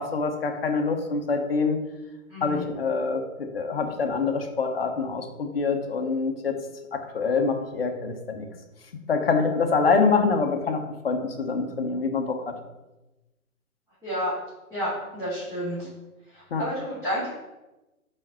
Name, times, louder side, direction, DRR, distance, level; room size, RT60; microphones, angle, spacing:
voice 1, 0.0-1.8 2.4-6.5 6.9-8.5 9.1-12.6 16.5-16.7, left 4 dB, 40° left, 4 dB, 1.0 m, -25 dB
voice 2, 2.3-2.6 14.0-14.3 14.7-15.9 16.3-17.3, equal, 5° right, -13 dB, 2.5 m, -30 dB
5.5 x 5.3 x 6.1 m, 1.0 s
hypercardioid pair, 160°, 43 cm